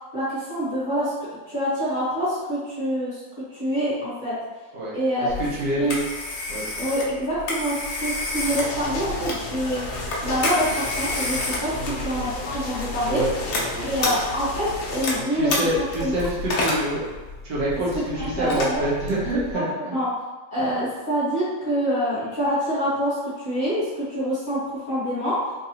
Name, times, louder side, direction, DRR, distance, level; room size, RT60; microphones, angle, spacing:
voice 1, 0.1-4.4 4.9-5.3 5.8-5.9 6.8-13.3 13.8-15.5 16.0-16.1 17.9-18.8 19.5-20.1 20.5-25.4, equal, 35° left, -12 dB, 1.0 m, -26 dB
voice 2, 4.7-6.0 6.5-6.6 11.7-12.0 13.1-14.1 15.1-17.0 17.4-20.0, right 1 dB, 70° right, -7 dB, 1.5 m, -27 dB
Telephone, 5.3-19.5, left 2 dB, 85° left, 0.6 m, -30 dB
sound 1, 8.4-15.2, left 2 dB, 70° left, 1.0 m, -34 dB
3.8 x 2.6 x 2.8 m, 1.2 s
omnidirectional pair, 2.0 m